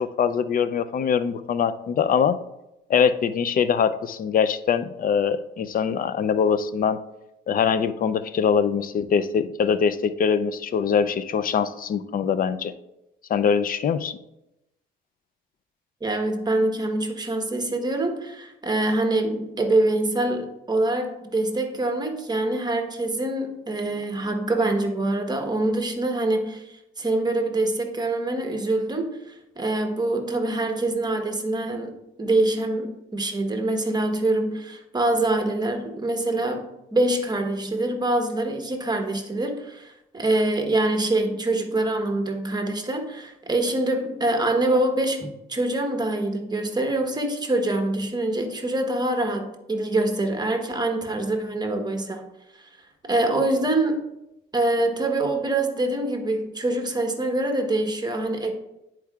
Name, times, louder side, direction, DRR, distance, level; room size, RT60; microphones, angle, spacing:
voice 1, 0.0-2.4 2.9-7.0 7.5-12.7 13.3-14.2, left 7 dB, 45° left, 13 dB, 0.5 m, -23 dB
voice 2, 16.0-26.6 27.0-52.2 53.0-54.0 54.5-58.5, right 2 dB, 20° right, 4 dB, 1.0 m, -25 dB
10.0 x 4.6 x 2.4 m, 0.90 s
cardioid pair, 90°, 20 cm